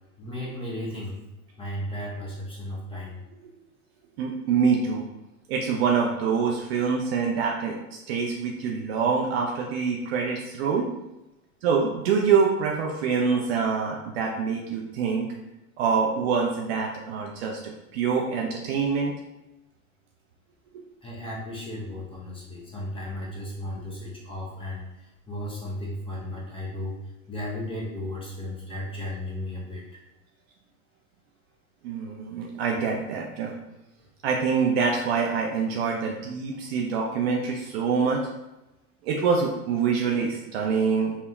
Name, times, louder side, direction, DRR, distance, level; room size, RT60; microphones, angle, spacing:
voice 1, 0.2-1.2 1.6-3.2 21.0-27.0 27.3-29.8, left 1 dB, 10° left, -5 dB, 0.7 m, -35 dB
voice 2, 4.2-5.0 5.5-10.9 11.6-15.3 15.8-17.6 17.9-19.1 31.8-33.5 34.2-38.2 39.0-41.2, right 5 dB, 45° right, 0 dB, 0.4 m, -25 dB
3.6 x 2.1 x 2.2 m, 0.98 s
figure-of-eight pair, 90°, 45 cm